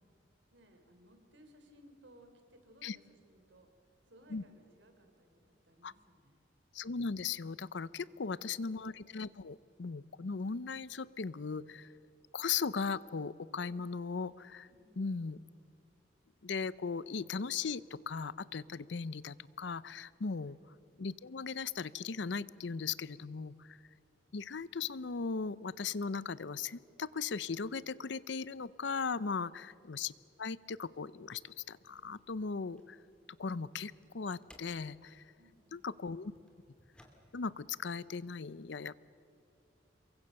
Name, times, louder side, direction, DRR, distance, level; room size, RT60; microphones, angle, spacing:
voice 1, 0.5-3.7 4.1-6.5 8.1-8.6 14.7-15.3 20.4-20.6 35.4-35.9, right 1 dB, 75° right, 6 dB, 3.7 m, -62 dB
voice 2, 6.7-11.9 12.3-14.7 15.0-15.4 16.4-20.6 21.0-23.8 24.3-30.1 30.4-33.0 33.4-35.2 35.7-36.3 37.3-39.0, left 5 dB, 70° left, 19 dB, 0.6 m, -38 dB
sound 1, 31.8-37.5, left 1 dB, 5° left, 2.6 m, -65 dB
28.0 x 23.0 x 6.6 m, 2.7 s
head